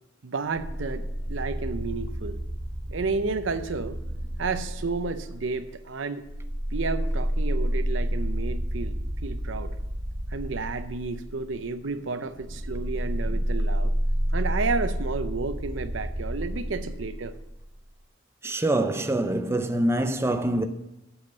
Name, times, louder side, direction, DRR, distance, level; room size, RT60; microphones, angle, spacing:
voice 1, 0.2-2.4 2.9-4.0 4.4-6.3 6.7-9.8 10.3-13.9 14.3-17.3, right 4 dB, 70° right, 0.6 m, -31 dB
sound 1, 0.5-5.7 6.2-17.8, equal, 30° right, 1.1 m, -30 dB
voice 2, 18.4-20.6, right 1 dB, 15° right, 0.5 m, -25 dB
8.1 x 7.2 x 6.6 m
head